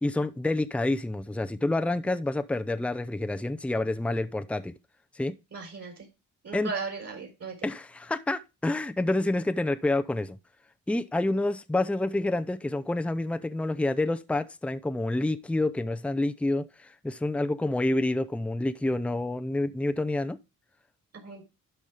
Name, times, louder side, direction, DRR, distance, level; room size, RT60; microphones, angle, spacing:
voice 1, 0.0-4.7 5.2-5.4 6.5-6.7 7.6-10.4 10.9-20.4, left 2 dB, 5° left, 0.6 m, -28 dB
voice 2, 5.5-6.1 6.4-7.7 21.1-21.4, right 4 dB, 45° right, 3.9 m, -37 dB
12.0 x 5.5 x 3.4 m
cardioid pair, 115°, 36 cm